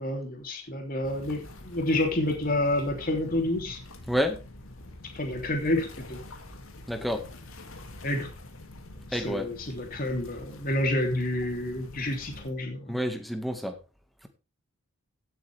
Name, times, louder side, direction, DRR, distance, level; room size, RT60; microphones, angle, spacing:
voice 1, 0.0-3.8 5.1-6.2 8.0-8.3 9.1-13.0, left 1 dB, 40° left, 2 dB, 3.2 m, -29 dB
sound 1, 1.0-12.5, left 1 dB, 80° left, 2.6 m, -46 dB
voice 2, 4.1-4.4 6.9-7.2 9.1-9.5 12.9-13.7, equal, ahead, 6 dB, 1.8 m, -28 dB
16.5 x 9.0 x 3.5 m, 0.30 s
head